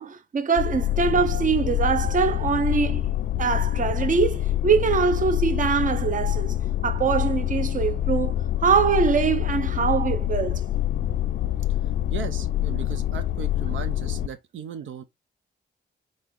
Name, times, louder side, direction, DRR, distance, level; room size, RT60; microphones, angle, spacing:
voice 1, 0.0-3.0 3.4-6.6 6.8-10.6, right 6 dB, 45° right, 0.7 m, -23 dB
sound 1, 0.6-14.3, left 12 dB, 70° left, 0.4 m, -26 dB
voice 2, 12.1-15.0, right 8 dB, 85° right, 0.6 m, -37 dB
4.1 x 3.9 x 3.1 m
cardioid pair, 105°, 19 cm